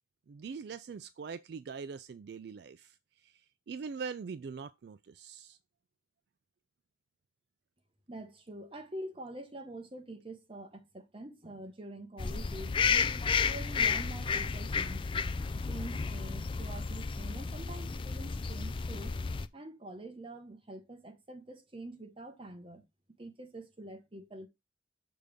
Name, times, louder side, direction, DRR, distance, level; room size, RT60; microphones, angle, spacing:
voice 1, 0.3-2.9 3.2-3.3 3.7-5.6, right 5 dB, 60° right, 0.3 m, -42 dB
voice 2, 8.1-15.1 15.5-19.2 19.5-22.9 23.2-24.5, right 1 dB, 30° right, 1.0 m, -46 dB
sound 1, 12.2-19.5, left 5 dB, 25° left, 0.4 m, -32 dB
6.7 x 3.4 x 5.1 m
head